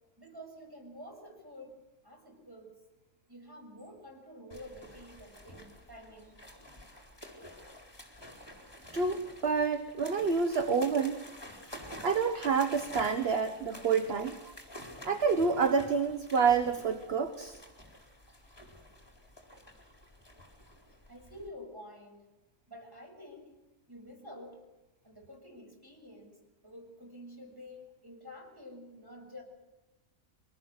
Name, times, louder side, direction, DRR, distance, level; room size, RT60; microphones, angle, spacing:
voice 1, 0.2-1.8 2.0-2.7 3.3-6.4 11.6-11.7 21.1-22.3 22.7-23.6 23.9-24.6 25.0-29.4, left 1 dB, 15° right, 0 dB, 6.7 m, -49 dB
sound 1, 4.5-21.5, equal, 15° left, 4.5 m, -49 dB
voice 2, 8.9-11.2 12.0-14.5 15.0-17.6, right 5 dB, 50° right, 8 dB, 1.5 m, -28 dB
24.5 x 19.5 x 7.9 m, 1.0 s
omnidirectional pair, 1.4 m